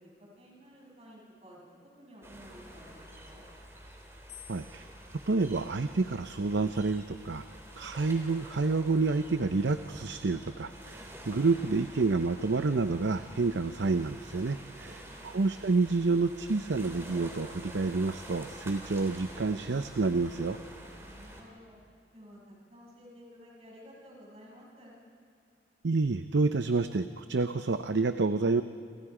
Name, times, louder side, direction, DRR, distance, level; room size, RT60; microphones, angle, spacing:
voice 1, 0.0-3.5 14.8-15.4 21.0-21.8 22.1-24.9, equal, 35° right, -4 dB, 7.3 m, -53 dB
sound 1, 2.2-21.4, right 1 dB, 15° right, 3.3 m, -48 dB
sound 2, 4.3-6.5 7.3-7.8, left 10 dB, 80° left, 7.2 m, -56 dB
voice 2, 4.5-4.9 5.3-7.4 7.8-20.6 25.8-28.6, right 3 dB, 85° right, 10 dB, 0.7 m, -29 dB
28.5 x 28.0 x 5.0 m, 2.6 s
head